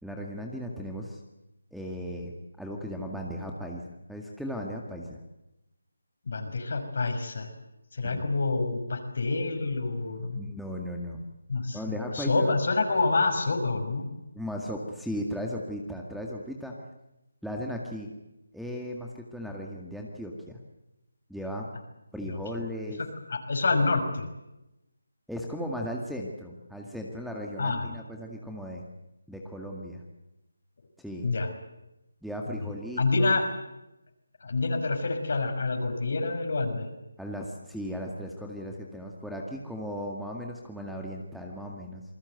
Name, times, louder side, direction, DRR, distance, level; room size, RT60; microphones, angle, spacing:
voice 1, 0.0-1.2 1.7-2.3 2.6-3.8 4.1-5.2 8.0-8.2 10.3-11.2 11.7-12.5 14.3-16.8 17.4-18.1 18.5-20.6 21.3-21.7 22.1-23.0 25.3-28.8 29.3-30.0 31.0-31.3 32.2-33.3 37.2-42.0, equal, ahead, 0 dB, 2.0 m, -36 dB
voice 2, 6.3-7.5 7.9-10.4 11.5-14.1 22.3-22.4 23.0-24.3 27.6-27.9 31.2-31.5 33.0-33.5 34.4-36.9, left 3 dB, 55° left, 6 dB, 5.6 m, -27 dB
27.5 x 20.0 x 8.1 m, 0.93 s
figure-of-eight pair, 160°, 0 cm